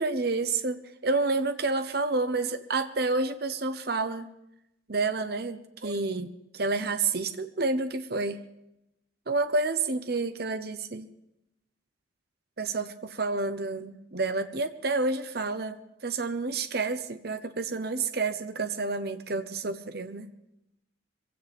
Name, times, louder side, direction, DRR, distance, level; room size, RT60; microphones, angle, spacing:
voice 1, 0.0-4.3 4.9-8.4 9.3-11.1 12.6-20.3, right 3 dB, 55° right, 9 dB, 1.0 m, -29 dB
23.5 x 16.5 x 3.6 m, 0.86 s
head